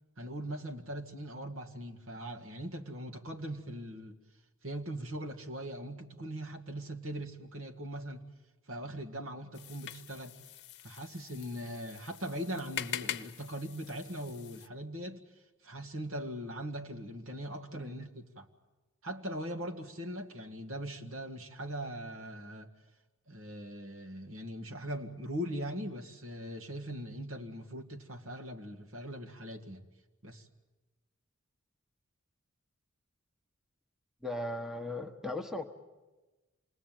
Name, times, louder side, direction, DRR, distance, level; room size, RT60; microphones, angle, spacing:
voice 1, 0.2-4.2 4.6-8.3 8.7-10.4 10.8-15.2 15.6-18.5 19.0-22.7 23.3-29.8 30.2-30.5, equal, 65° right, 2.0 m, -40 dB
sound 1, 9.5-14.7, left 10 dB, 55° left, 1.0 m, -43 dB
voice 2, 34.2-35.6, left 2 dB, ahead, 1.2 m, -37 dB
27.5 x 20.5 x 9.2 m
head